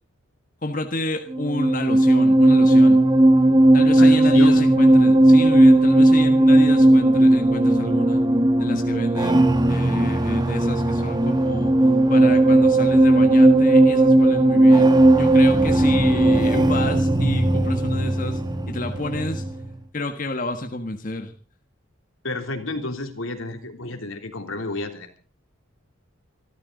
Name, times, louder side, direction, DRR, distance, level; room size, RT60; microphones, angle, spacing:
voice 1, 0.6-3.0 3.7-8.2 8.6-11.7 12.1-14.9 15.2-18.4 18.7-19.4 19.9-21.3, left 2 dB, 40° left, 5 dB, 1.5 m, -30 dB
sound 1, 1.3-19.8, right 1 dB, 20° right, 1.1 m, -16 dB
voice 2, 3.9-4.7 22.2-25.2, left 2 dB, 80° left, 5 dB, 3.3 m, -31 dB
26.0 x 13.5 x 4.0 m, 0.39 s
head